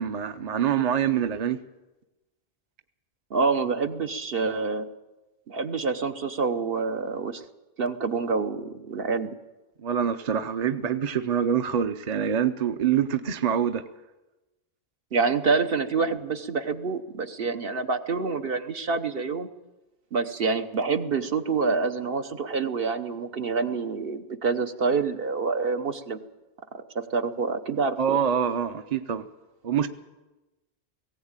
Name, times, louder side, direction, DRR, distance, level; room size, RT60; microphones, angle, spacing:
voice 1, 0.0-1.6 9.8-13.8 28.0-29.3 29.6-29.9, right 8 dB, 45° right, 0.8 m, -25 dB
voice 2, 3.3-4.9 5.5-7.4 7.8-9.3 15.1-19.5 20.1-26.2 26.7-28.2, right 4 dB, 65° right, 1.2 m, -27 dB
18.5 x 16.5 x 8.9 m
omnidirectional pair, 1.1 m